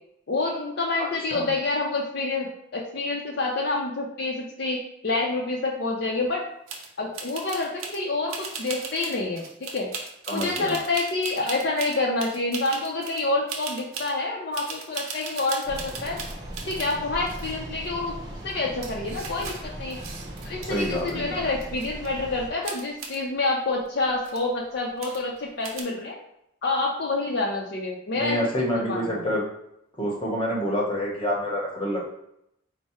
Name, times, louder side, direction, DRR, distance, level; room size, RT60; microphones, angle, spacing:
voice 1, 0.3-6.4 7.0-9.9 10.3-16.2 16.7-18.1 18.4-20.0 20.4-26.2 26.6-29.2, left 3 dB, 55° left, -2 dB, 0.5 m, -28 dB
sound 1, 6.7-6.9 7.1-8.0 8.3-13.2 13.5-14.1 14.5-17.0 17.2-17.9 18.5-18.6 18.8-21.1 21.4-22.1 22.6-23.2 23.8-23.9 24.2-24.5 25.0-25.4 25.6-25.8, right 4 dB, 85° right, 0.8 m, -38 dB
voice 2, 10.3-10.8 20.7-21.4 28.1-29.4 30.0-32.0, equal, 25° left, -2 dB, 0.9 m, -27 dB
sound 2, 15.6-22.5, right 1 dB, 20° right, 0.7 m, -38 dB
4.6 x 2.1 x 4.2 m, 0.78 s
head